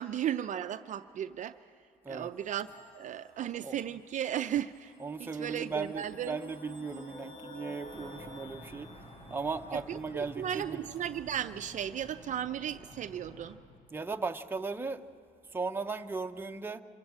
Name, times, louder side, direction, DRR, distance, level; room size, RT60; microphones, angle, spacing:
voice 1, 0.0-1.6 2.1-2.7 2.9-4.9 5.2-6.4 9.7-13.6, right 10 dB, 50° right, 9 dB, 0.5 m, -35 dB
voice 2, 2.0-2.4 3.4-3.8 5.0-8.9 9.3-10.8 13.9-15.1 15.5-16.8, right 4 dB, 15° right, 5 dB, 0.8 m, -37 dB
sound 1, 2.4-12.1, left 2 dB, 85° left, 7.4 m, -53 dB
sound 2, 7.8-13.6, left 1 dB, 35° left, 7.2 m, -51 dB
26.5 x 16.0 x 7.6 m, 2.3 s
cardioid pair, 110°, 17 cm